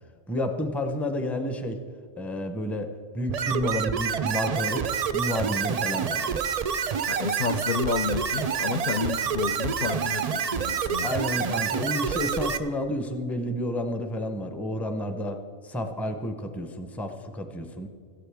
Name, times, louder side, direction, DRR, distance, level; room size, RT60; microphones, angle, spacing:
voice 1, 0.3-1.8 2.2-2.9 3.1-6.4 11.0-15.4 15.6-17.9, left 1 dB, ahead, 6 dB, 0.5 m, -30 dB
sound 1, 3.3-12.6, right 7 dB, 80° right, 0.3 m, -28 dB
voice 2, 7.1-11.1, left 6 dB, 65° left, 7 dB, 0.4 m, -30 dB
16.5 x 13.5 x 3.5 m, 2.2 s
omnidirectional pair, 1.3 m